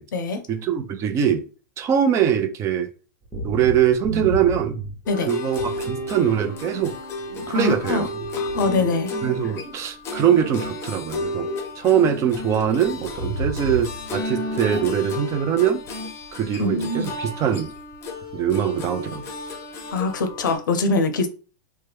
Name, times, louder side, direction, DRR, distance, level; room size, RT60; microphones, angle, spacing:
voice 1, 0.5-1.5 1.8-2.9 3.4-4.8 5.3-7.0 7.5-8.1 9.2-11.5 11.8-15.8 16.3-17.7 18.3-19.2, right 9 dB, 30° right, 0.5 m, -22 dB
sound 1, 3.2-5.1 5.6-6.2 6.6-9.8 10.2-11.7 12.0-12.3 12.9-14.1 14.3-14.7, right 1 dB, 10° right, 0.9 m, -33 dB
sound 2, 5.1-20.6, left 2 dB, 25° left, 0.7 m, -32 dB
voice 2, 7.5-8.1 8.4-9.1 16.6-17.1 19.9-21.3, left 3 dB, 90° left, 0.7 m, -23 dB
3.0 x 2.2 x 3.4 m
hypercardioid pair, 130°, 10 cm